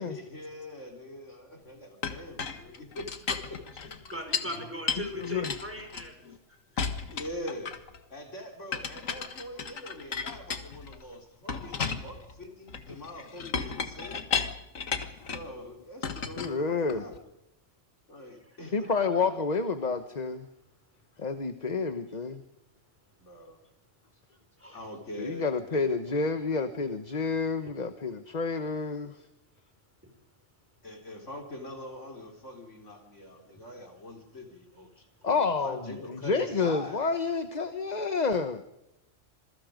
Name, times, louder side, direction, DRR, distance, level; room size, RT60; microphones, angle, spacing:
voice 1, 0.0-3.6 3.9-4.0 4.5-4.7 7.1-7.7 8.1-14.2 15.3-17.2 18.1-18.9 23.2-23.6 24.7-25.8 30.8-37.1, left 1 dB, 65° left, 2 dB, 4.5 m, -43 dB
Chink clink, 2.0-4.6 4.9-6.4 6.8-8.0 8.7-11.0 11.5-15.5 16.0-17.2, left 5 dB, 85° left, 2.0 m, -34 dB
voice 2, 4.0-6.1 6.5-6.9 9.7-9.8 18.4-19.2 24.6-24.8 30.0-30.1, left 1 dB, 10° right, 4 dB, 5.6 m, -40 dB
voice 3, 5.2-5.5 16.4-17.1 18.7-20.5 21.2-22.4 25.2-29.3 35.2-38.6, left 4 dB, 35° left, 9 dB, 1.2 m, -29 dB
27.0 x 22.5 x 5.2 m, 0.91 s
omnidirectional pair, 1.3 m